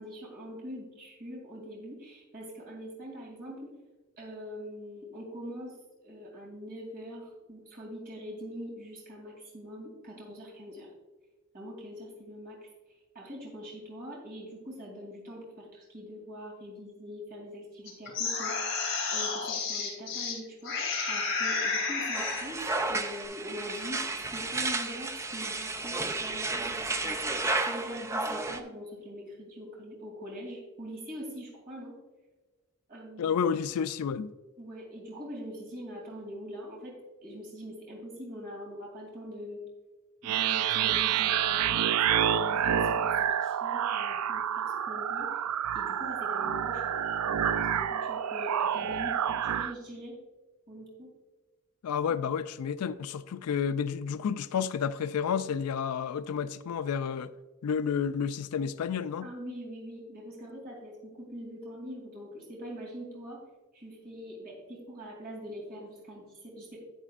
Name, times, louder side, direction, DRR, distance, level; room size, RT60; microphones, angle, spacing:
voice 1, 0.0-3.7 4.2-5.7 6.0-10.9 11.5-12.7 13.1-32.0 32.9-33.7 34.6-36.9 37.2-39.6 40.2-45.3 45.7-46.9 47.3-50.2 50.7-51.1 59.2-63.4 63.7-66.8, equal, 40° right, 2.8 m, -43 dB
sound 1, 17.9-20.3 20.6-22.5, left 4 dB, 55° left, 3.0 m, -31 dB
sound 2, 22.1-28.6, right 2 dB, 15° right, 0.4 m, -32 dB
voice 2, 33.2-34.3 51.8-57.3 57.6-59.3, left 7 dB, 85° left, 0.4 m, -30 dB
sound 3, 40.2-49.7, right 9 dB, 85° right, 0.4 m, -28 dB
10.0 x 9.0 x 2.5 m
head